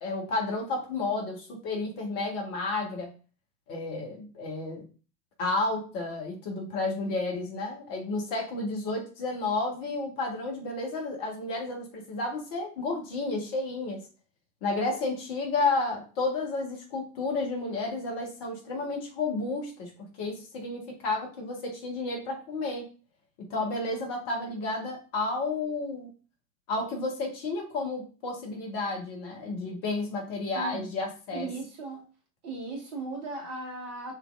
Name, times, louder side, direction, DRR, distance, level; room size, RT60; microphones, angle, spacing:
voice 1, 0.0-3.1 3.7-4.8 5.4-14.0 14.6-19.9 20.2-22.8 23.5-26.1 26.7-31.5, left 3 dB, 40° left, 1 dB, 1.6 m, -31 dB
voice 2, 30.5-30.9 31.3-32.0 32.4-34.1, right 3 dB, 40° right, 1 dB, 1.7 m, -37 dB
5.8 x 3.3 x 2.6 m, 0.35 s
figure-of-eight pair, 85°, 48 cm